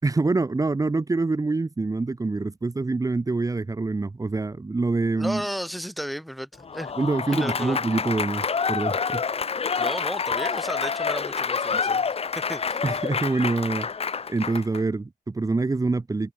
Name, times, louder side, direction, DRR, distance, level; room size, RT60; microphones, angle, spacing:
voice 1, 0.0-5.4 7.0-9.2 12.8-13.9 14.3-16.3, right 3 dB, 20° right, 4.4 m, -25 dB
voice 2, 5.2-6.9 7.3-7.8 9.8-12.0 12.3-12.8, equal, ahead, 5.7 m, -33 dB
Applause / Crowd, 6.6-14.8, left 5 dB, 35° left, 2.0 m, -28 dB
wide cardioid pair, 165°, 18 cm